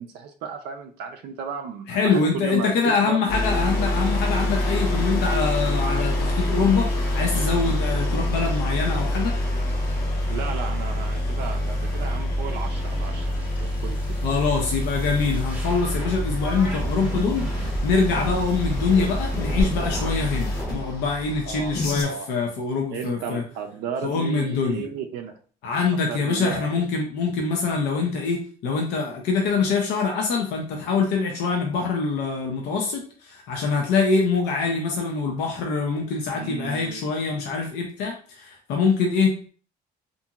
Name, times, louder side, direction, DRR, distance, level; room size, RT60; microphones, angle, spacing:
voice 1, 0.0-3.2 3.8-4.0 10.3-14.2 21.4-21.7 22.0-22.3 22.9-25.3 25.9-26.7 36.3-37.1, right 7 dB, 80° right, 4 dB, 0.4 m, -34 dB
voice 2, 1.9-6.9 7.1-9.3 14.2-23.4 24.0-24.8 25.6-39.5, left 4 dB, 90° left, 1 dB, 0.5 m, -24 dB
sound 1, 3.3-22.0, left 1 dB, 65° left, 0.9 m, -26 dB
sound 2, 11.8-20.8, right 3 dB, 10° right, 0.7 m, -36 dB
2.8 x 2.5 x 2.3 m, 0.43 s
cardioid pair, 110°, 17 cm